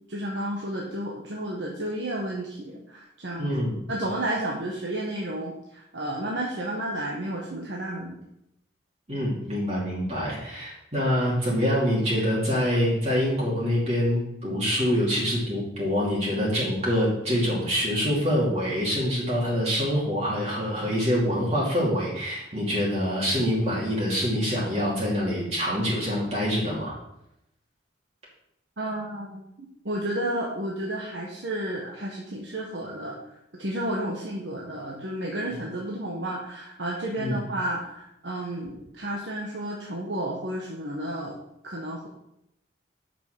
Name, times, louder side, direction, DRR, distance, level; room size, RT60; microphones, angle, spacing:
voice 1, 0.1-3.5 3.9-8.2 28.8-29.4 29.8-33.2 33.6-41.4 41.6-42.1, right 1 dB, 75° right, -2 dB, 1.5 m, -32 dB
voice 2, 3.4-3.7 9.1-26.9 35.5-35.6 37.2-37.4, equal, 35° right, -5 dB, 2.8 m, -25 dB
9.0 x 6.0 x 6.0 m, 0.82 s
head